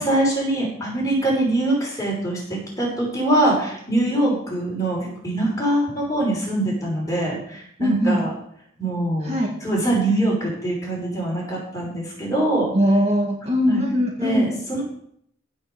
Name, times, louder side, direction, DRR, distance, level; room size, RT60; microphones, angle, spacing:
voice 1, 0.0-8.3 8.8-12.7 13.7-13.8 14.2-14.8, right 1 dB, 15° left, -4 dB, 5.8 m, -23 dB
voice 2, 7.8-8.2 9.2-9.5 12.7-14.5, equal, 30° right, 0 dB, 1.9 m, -20 dB
16.0 x 5.8 x 6.9 m, 0.67 s
head